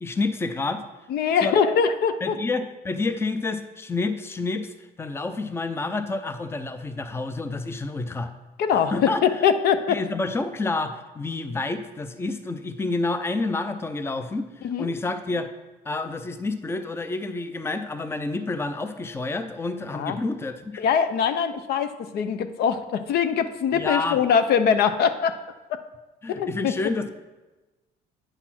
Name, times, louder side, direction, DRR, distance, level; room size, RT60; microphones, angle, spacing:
voice 1, 0.0-0.8 1.4-1.5 2.2-8.3 8.9-9.4 9.9-15.5 15.9-20.7 23.7-24.2 26.2-27.1, left 3 dB, 15° left, 9 dB, 0.5 m, -29 dB
voice 2, 1.1-2.4 8.6-10.0 14.6-14.9 19.9-20.2 20.8-25.3 25.7-25.8 26.3-26.7, left 7 dB, 70° left, 10 dB, 0.6 m, -22 dB
8.9 x 4.1 x 5.9 m, 1.1 s
cardioid pair, 110°, 17 cm